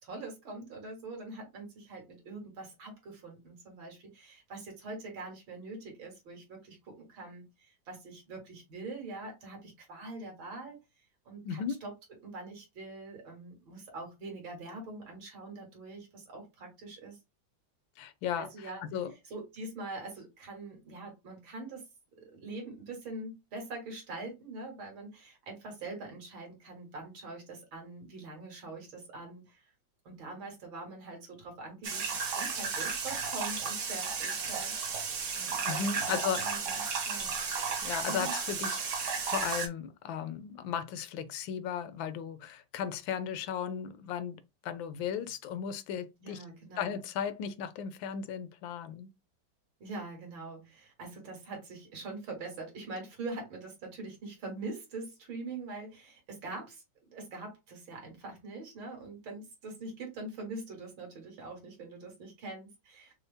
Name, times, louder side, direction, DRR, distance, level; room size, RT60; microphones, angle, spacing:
voice 1, 0.0-10.8 11.3-11.9 12.2-17.2 18.4-18.8 19.3-21.9 22.2-29.6 30.1-35.0 35.4-36.1 36.4-37.4 38.1-38.3 46.2-47.0 49.8-56.8 57.1-63.1, right 2 dB, 80° right, 2.4 m, -44 dB
voice 2, 11.4-11.8 18.0-19.1 35.6-36.5 37.8-44.4 44.6-46.4 46.8-49.1, left 8 dB, 80° left, 1.3 m, -36 dB
sound 1, 31.8-39.7, right 5 dB, 50° right, 1.0 m, -33 dB
5.5 x 2.0 x 3.4 m
omnidirectional pair, 2.1 m